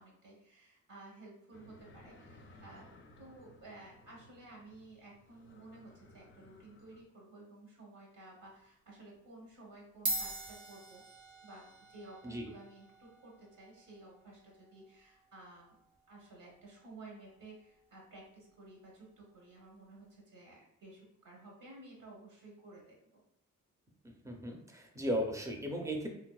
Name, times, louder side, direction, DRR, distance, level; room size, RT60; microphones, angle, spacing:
voice 1, 0.0-2.9 3.2-11.0 11.4-15.8 16.1-23.0, right 2 dB, 85° right, -3 dB, 1.0 m, -54 dB
sound 1, 1.5-7.0, left 1 dB, 40° left, 0.4 m, -59 dB
sound 2, 8.4-8.7 9.5-9.6 9.9-18.6, right 1 dB, 60° right, 0.6 m, -45 dB
voice 2, 24.0-26.1, equal, 10° right, 1 dB, 0.5 m, -36 dB
3.4 x 2.6 x 2.3 m, 0.83 s
wide cardioid pair, 105°, 33 cm